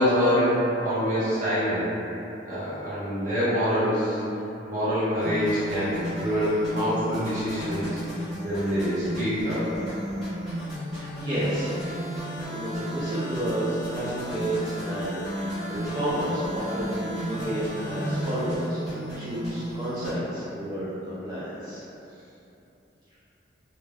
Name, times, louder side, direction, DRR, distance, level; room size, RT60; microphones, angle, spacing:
voice 1, 0.0-1.9 2.4-4.2 4.7-8.0 8.4-9.7, equal, 45° right, -11 dB, 0.9 m, -25 dB
sound 1, 5.2-20.2, equal, ahead, 0.8 m, -33 dB
voice 2, 11.0-11.8 12.5-21.8, right 1 dB, 25° right, -12 dB, 0.4 m, -31 dB
2.2 x 2.2 x 3.3 m, 2.9 s
head